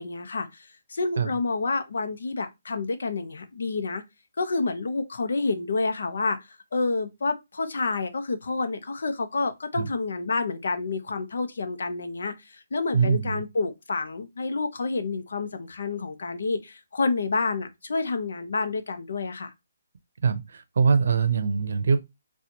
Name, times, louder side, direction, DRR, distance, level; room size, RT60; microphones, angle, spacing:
voice 1, 0.0-4.0 4.4-6.4 6.7-19.5, left 3 dB, 70° left, 0.8 m, -29 dB
voice 2, 12.9-13.4 20.2-22.0, right 5 dB, 60° right, 0.6 m, -23 dB
4.3 x 2.4 x 2.8 m
hypercardioid pair, 165°, 0 cm